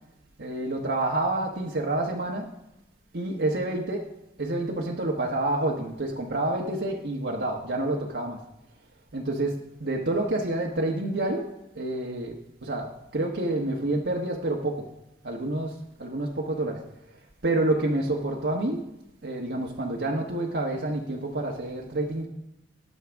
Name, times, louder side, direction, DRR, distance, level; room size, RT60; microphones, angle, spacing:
voice 1, 0.4-2.5 3.1-4.0 4.4-8.4 9.1-9.5 9.8-11.5 11.8-12.9 13.1-14.9 15.2-15.7 16.0-16.8 17.4-18.8 19.2-22.3, right 2 dB, 80° right, -1 dB, 1.2 m, -28 dB
19.5 x 6.5 x 3.5 m, 0.90 s
head